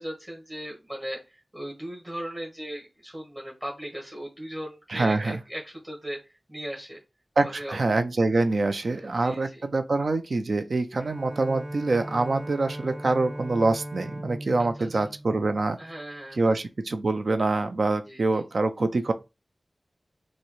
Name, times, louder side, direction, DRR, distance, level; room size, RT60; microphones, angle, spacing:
voice 1, 0.0-6.2 6.5-7.0 7.4-7.8 8.9-9.6 14.6-14.9 15.8-16.5 18.1-18.2, equal, 25° right, 1.3 m, -38 dB
voice 2, 4.9-5.4 7.4-15.8 16.4-19.1, right 3 dB, 75° right, 0.4 m, -25 dB
Bowed string instrument, 11.0-16.2, right 1 dB, 45° right, 1.1 m, -39 dB
6.2 x 2.1 x 3.0 m
wide cardioid pair, 60°, 0 cm